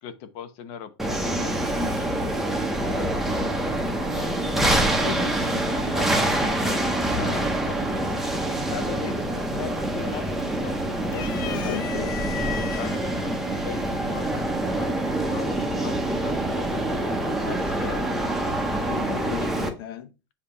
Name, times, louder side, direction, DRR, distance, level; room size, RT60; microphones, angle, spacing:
voice 1, 0.0-2.5 2.8-4.3 5.8-8.3 8.7-10.8 11.1-11.8 12.7-14.3 14.6-18.0, left 8 dB, 50° left, 0.9 m, -39 dB
sound 1, 1.0-19.7, right 1 dB, ahead, 0.8 m, -26 dB
voice 2, 5.0-6.0 11.4-12.1 18.9-20.1, left 8 dB, 85° left, 1.0 m, -36 dB
sound 2, 9.2-9.6 10.0-10.7 11.1-13.0 13.9-14.0 15.2-15.6, left 11 dB, 65° left, 0.6 m, -36 dB
7.4 x 2.9 x 4.8 m
supercardioid pair, 155°, 12 cm